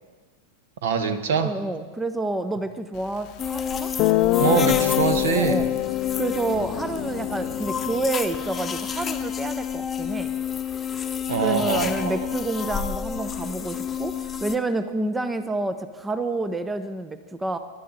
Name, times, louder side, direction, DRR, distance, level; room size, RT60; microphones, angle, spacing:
voice 1, 0.8-1.5 4.4-5.6 11.3-12.2, right 6 dB, 60° right, 9 dB, 1.2 m, -24 dB
voice 2, 1.4-3.9 5.3-5.7 6.2-10.3 11.4-17.6, right 2 dB, 10° right, 12 dB, 0.6 m, -29 dB
Guitar, 3.4-3.5 4.0-8.1, left 16 dB, 40° left, 0.4 m, -24 dB
sound 1, 3.4-14.6, left 8 dB, 20° left, 0.9 m, -30 dB
24.0 x 12.0 x 3.9 m, 1.4 s
figure-of-eight pair, 90°, 0 cm